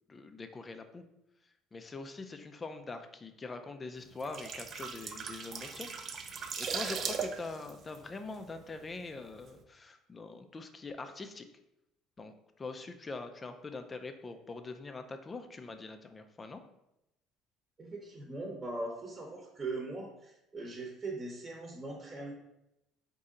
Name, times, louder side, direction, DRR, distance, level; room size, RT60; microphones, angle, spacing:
voice 1, 0.1-1.0 1.7-11.5 12.2-16.6, left 3 dB, 25° left, 7 dB, 0.4 m, -44 dB
sound 1, 4.1-8.9 9.2-9.4, right 6 dB, 50° right, 0.5 m, -39 dB
voice 2, 17.8-22.3, right 2 dB, 25° right, -1 dB, 0.9 m, -40 dB
4.2 x 2.7 x 3.7 m, 0.86 s
supercardioid pair, 90°, 0 cm